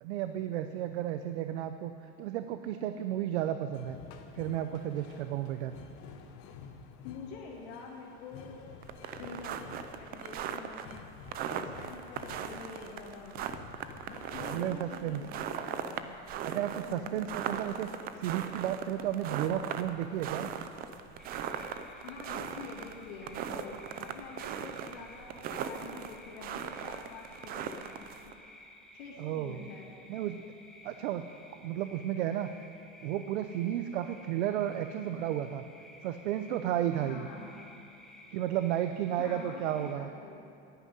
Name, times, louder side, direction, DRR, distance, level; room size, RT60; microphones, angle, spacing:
voice 1, 0.0-1.9 2.2-4.0 4.4-5.8 14.5-15.2 16.4-17.9 18.2-20.5 29.2-29.7 30.1-30.4 30.8-31.3 31.6-32.5 33.0-35.6 36.0-37.2 38.3-40.1, right 11 dB, 80° right, 9 dB, 0.7 m, -33 dB
sound 1, 3.7-14.6, left 6 dB, 45° left, 1.1 m, -51 dB
voice 2, 7.0-8.6 9.1-11.0 11.6-13.4 14.1-16.1 16.9-17.3 22.0-28.3 28.9-30.1 36.9-37.8 39.2-40.4, left 5 dB, 75° left, -3 dB, 2.1 m, -47 dB
sound 2, 8.8-28.3, right 8 dB, 30° right, 0.5 m, -39 dB
sound 3, 21.2-39.9, left 1 dB, ahead, 0.8 m, -54 dB
11.0 x 10.0 x 9.2 m, 2.6 s
supercardioid pair, 160°, 33 cm